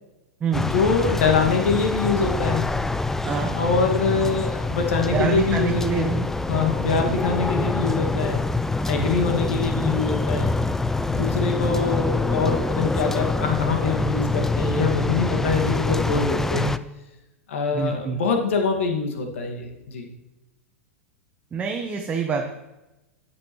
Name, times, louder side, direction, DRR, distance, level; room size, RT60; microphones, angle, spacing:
sound 1, 0.5-16.8, left 3 dB, 5° left, 0.3 m, -25 dB
voice 1, 0.6-2.7 3.5-6.1 6.5-8.4 8.9-10.5 11.1-16.7 17.5-20.1, left 4 dB, 60° left, 3 dB, 1.9 m, -24 dB
voice 2, 5.1-6.3 17.7-18.2 21.5-22.4, right 6 dB, 20° right, 2 dB, 1.0 m, -26 dB
13.5 x 9.7 x 3.1 m, 0.98 s
figure-of-eight pair, 95°, 8 cm